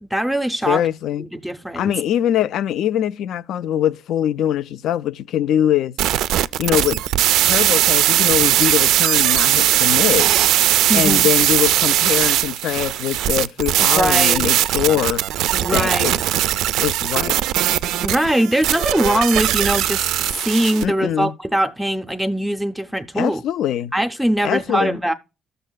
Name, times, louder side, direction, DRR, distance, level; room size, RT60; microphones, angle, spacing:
voice 1, 0.0-0.8 1.2-1.9 10.9-11.3 13.8-14.5 15.5-16.2 18.0-20.1 20.4-23.4 23.9-25.1, right 1 dB, ahead, 0.5 m, -21 dB
voice 2, 0.7-1.3 1.8-6.0 6.6-7.0 7.4-10.3 10.9-15.2 15.7-16.2 16.8-17.5 20.8-21.3 23.2-23.9 24.4-25.0, left 11 dB, 65° left, 0.3 m, -22 dB
sound 1, 6.0-20.8, right 13 dB, 85° right, 0.3 m, -19 dB
15.5 x 6.6 x 2.2 m
cardioid pair, 150°, 0 cm